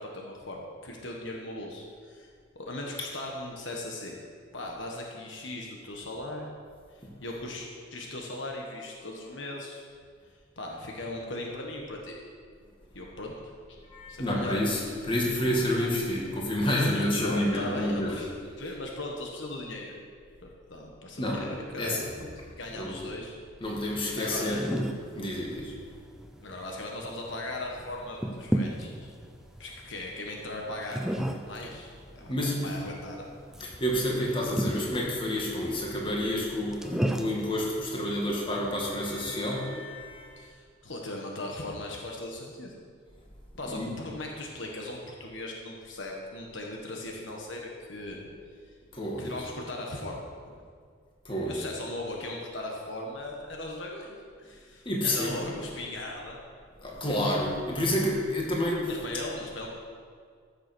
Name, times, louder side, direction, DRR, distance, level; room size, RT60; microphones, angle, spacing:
voice 1, 0.0-2.3 2.5-4.2 4.5-6.5 6.9-9.8 10.6-12.2 12.9-13.5 14.1-14.7 16.8-18.3 18.6-19.9 20.4-22.3 22.6-23.4 24.2-24.6 26.4-29.1 29.6-31.1 31.5-31.9 32.1-33.2 40.4-42.7 43.6-48.3 49.2-50.6 51.5-56.4 58.9-59.7, left 1 dB, 65° left, 0 dB, 1.4 m, -38 dB
voice 2, 13.9-14.8 15.1-18.2 21.2-21.5 21.8-22.1 22.8-22.9 23.6-24.7 25.2-25.7 32.3-32.6 33.6-40.4 43.6-43.9 48.9-49.3 51.3-51.6 54.9-55.4 56.8-58.9, left 1 dB, 25° left, -3 dB, 2.2 m, -29 dB
sound 1, 23.6-39.5, equal, 5° right, 0.6 m, -36 dB
14.5 x 6.9 x 6.2 m, 2.1 s
head